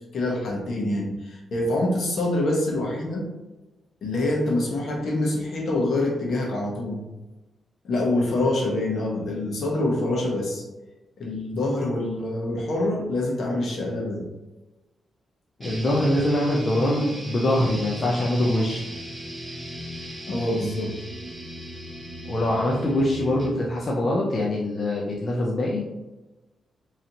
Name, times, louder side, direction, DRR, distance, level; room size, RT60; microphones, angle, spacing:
voice 1, 0.1-3.3 4.0-7.0 7.8-10.6 11.2-14.3 20.3-20.9, left 1 dB, 70° left, -1 dB, 1.1 m, -25 dB
voice 2, 15.6-18.9 22.3-25.8, left 1 dB, 45° left, -4 dB, 0.7 m, -23 dB
sound 1, 15.6-23.6, equal, 20° right, 1.1 m, -37 dB
3.9 x 3.1 x 2.9 m, 1.1 s
cardioid pair, 70°, 0 cm